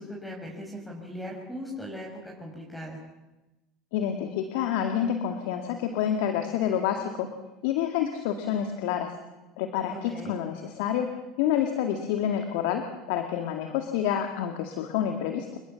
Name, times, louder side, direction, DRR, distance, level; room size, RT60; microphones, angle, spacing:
voice 1, 0.0-3.0 9.9-10.3, equal, ahead, -2 dB, 6.4 m, -39 dB
voice 2, 3.9-7.3 7.6-9.1 9.6-11.1 11.4-15.6, left 9 dB, 75° left, 5 dB, 2.1 m, -28 dB
28.5 x 21.0 x 7.1 m, 1.0 s
hypercardioid pair, 85°, 0 cm